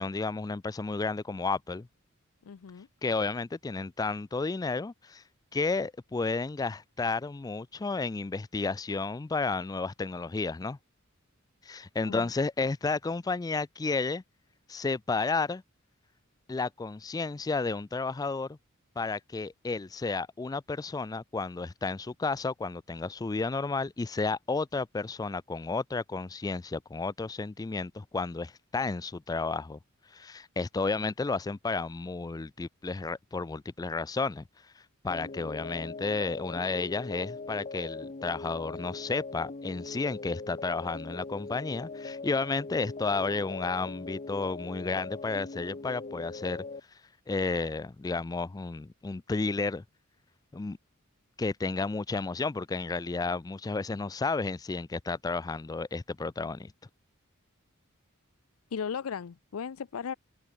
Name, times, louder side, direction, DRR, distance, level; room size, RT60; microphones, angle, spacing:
voice 1, 0.0-1.9 3.0-5.2 5.5-10.8 11.6-14.2 14.7-15.6 16.5-18.6 19.0-29.8 30.1-34.4 35.0-46.6 47.3-49.8 50.5-50.8 51.4-56.7, left 3 dB, 20° left, 0.3 m, -32 dB
voice 2, 2.4-2.9 12.1-12.3 58.7-60.1, left 6 dB, 85° left, 0.5 m, -36 dB
sound 1, 35.1-46.8, left 3 dB, 35° left, 0.8 m, -41 dB
head